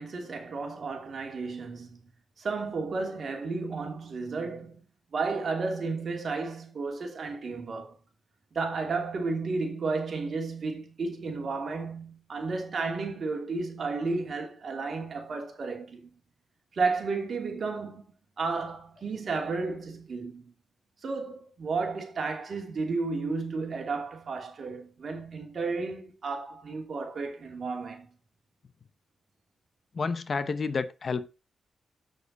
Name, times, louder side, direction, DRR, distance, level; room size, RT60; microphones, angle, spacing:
voice 1, 0.0-2.0 2.4-4.8 5.1-8.0 8.5-16.2 16.7-18.0 18.4-20.5 21.0-28.1, right 4 dB, 55° right, 2.9 m, -33 dB
voice 2, 29.9-31.3, left 4 dB, 45° left, 0.8 m, -30 dB
7.8 x 6.6 x 5.3 m
cardioid pair, 100°, 0 cm